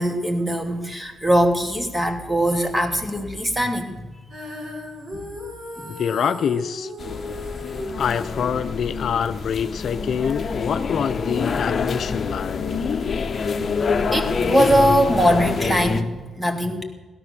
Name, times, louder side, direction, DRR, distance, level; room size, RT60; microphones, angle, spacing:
voice 1, 0.0-4.0 5.8-5.9 14.1-16.8, equal, 10° right, 5 dB, 2.5 m, -21 dB
Female singing, 4.3-10.5, left 1 dB, 50° right, 5.9 m, -37 dB
voice 2, 5.9-6.9 8.0-12.8, left 7 dB, 60° left, 10 dB, 0.5 m, -25 dB
sound 1, 7.0-16.0, left 5 dB, 40° left, 1.1 m, -26 dB
17.0 x 12.5 x 6.7 m, 1.3 s
cardioid pair, 85°, 0 cm